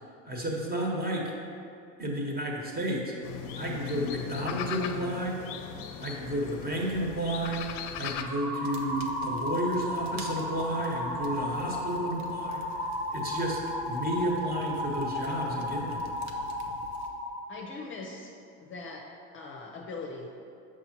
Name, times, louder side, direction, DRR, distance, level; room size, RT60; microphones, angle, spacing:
voice 1, 0.3-1.3 2.0-3.1 3.5-5.4 6.0-7.7 8.0-13.6 13.9-16.1, right 1 dB, 25° right, -1 dB, 1.4 m, -32 dB
sound 1, 3.2-8.2, left 8 dB, 65° left, 0.6 m, -38 dB
sound 2, 8.1-17.4, left 1 dB, ahead, 1.0 m, -34 dB
sound 3, 8.6-17.1, right 3 dB, 45° right, 0.8 m, -49 dB
voice 2, 17.5-18.3 18.6-19.1 19.3-20.3, left 3 dB, 30° left, 0 dB, 0.8 m, -40 dB
6.7 x 6.3 x 3.0 m, 2.5 s
hypercardioid pair, 90°, 39 cm